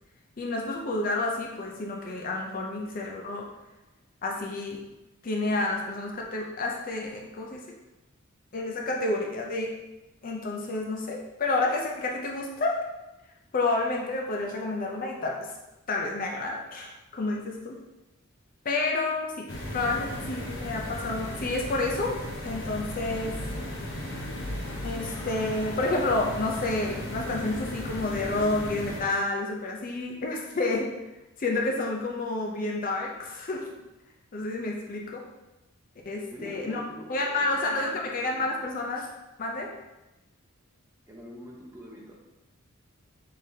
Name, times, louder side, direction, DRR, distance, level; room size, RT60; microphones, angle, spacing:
voice 1, 0.4-3.5 4.2-4.8 5.2-7.8 8.5-9.7 10.2-12.8 13.5-15.5 15.9-17.8 18.6-19.5 19.7-22.2 22.4-23.4 24.8-30.9 31.4-33.7 34.3-35.2 36.1-36.8 37.1-39.1 39.4-39.7, left 2 dB, 40° left, 0 dB, 0.5 m, -29 dB
sound 1, 19.5-29.0, left 1 dB, 65° left, 1.0 m, -36 dB
voice 2, 36.3-38.7 41.1-42.2, equal, 15° right, -3 dB, 0.8 m, -45 dB
5.0 x 3.8 x 2.7 m, 1.0 s
head